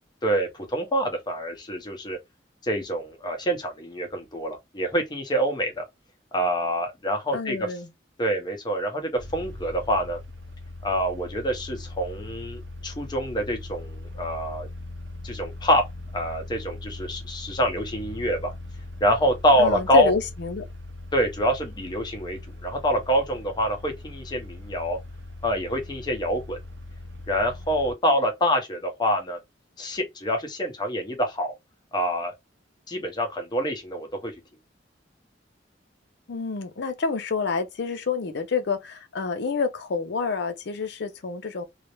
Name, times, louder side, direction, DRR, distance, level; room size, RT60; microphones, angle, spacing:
voice 1, 0.2-2.2 2.6-5.8 6.3-7.6 8.2-10.2 10.8-14.7 15.2-15.8 16.1-18.5 19.0-20.1 21.1-25.0 25.4-26.6 27.3-29.4 29.8-31.5 31.9-32.3 32.9-34.3, equal, 25° left, 0.7 m, -26 dB
voice 2, 7.3-7.9 19.6-20.6 36.3-41.6, left 4 dB, 65° left, 0.5 m, -28 dB
sound 1, 9.2-27.9, left 2 dB, 75° right, 0.6 m, -40 dB
2.4 x 2.0 x 2.9 m
head